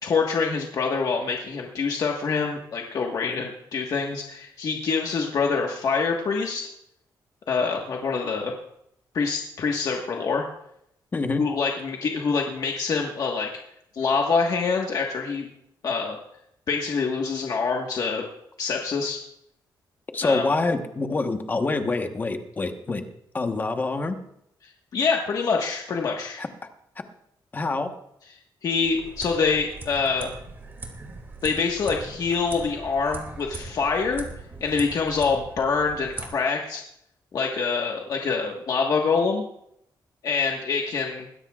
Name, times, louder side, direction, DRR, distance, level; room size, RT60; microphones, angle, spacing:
voice 1, 0.0-6.7 7.5-8.5 9.1-10.4 11.4-13.5 13.9-15.5 15.8-16.2 16.7-18.2 18.6-19.2 20.2-20.4 24.9-26.4 28.6-30.3 31.4-34.2 34.6-36.8 37.3-39.4 40.2-41.3, left 5 dB, 50° left, 0 dB, 1.4 m, -25 dB
voice 2, 11.1-11.4 20.1-23.0 23.3-24.2 26.4-26.5 27.5-27.9, left 3 dB, 25° left, 6 dB, 1.1 m, -26 dB
sound 1, 28.8-36.3, right 3 dB, 30° right, 2.4 m, -40 dB
21.0 x 16.5 x 2.4 m, 0.76 s
wide cardioid pair, 170°, 8 cm